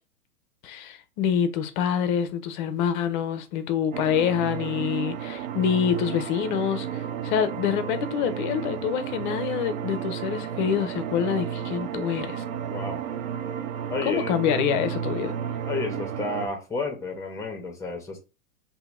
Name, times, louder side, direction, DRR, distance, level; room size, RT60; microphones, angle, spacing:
voice 1, 0.6-12.4 14.1-15.4, left 8 dB, 35° left, 0.5 m, -26 dB
sound 1, 3.9-16.5, right 9 dB, 65° right, 0.6 m, -32 dB
voice 2, 12.7-13.0 13.9-14.4 15.6-18.2, left 3 dB, 5° left, 0.7 m, -31 dB
2.8 x 2.6 x 3.5 m
hypercardioid pair, 110°, 44 cm